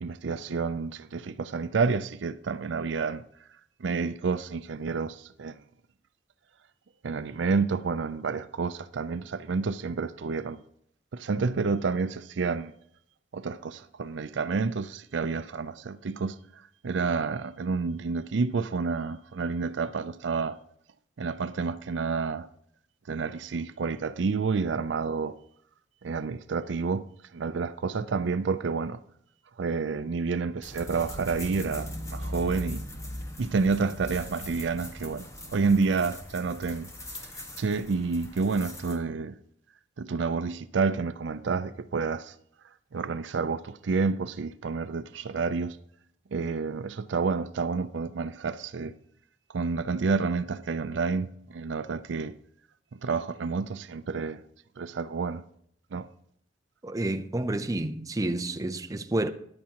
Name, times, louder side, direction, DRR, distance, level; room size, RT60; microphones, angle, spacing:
voice 1, 0.0-3.2 3.8-5.5 7.0-10.6 11.1-12.7 13.3-16.4 16.8-20.6 21.2-22.5 23.1-25.4 26.0-27.1 27.3-29.0 29.6-32.8 33.4-36.9 37.3-39.3 40.0-42.3 42.9-45.8 46.3-48.9 49.5-52.4 53.0-54.4 54.8-55.4 55.9-56.1, right 4 dB, 70° right, 0.5 m, -29 dB
sound 1, 30.6-39.0, left 1 dB, 15° left, 1.5 m, -40 dB
voice 2, 56.8-59.3, right 1 dB, 20° right, 0.5 m, -29 dB
14.0 x 10.5 x 2.9 m
head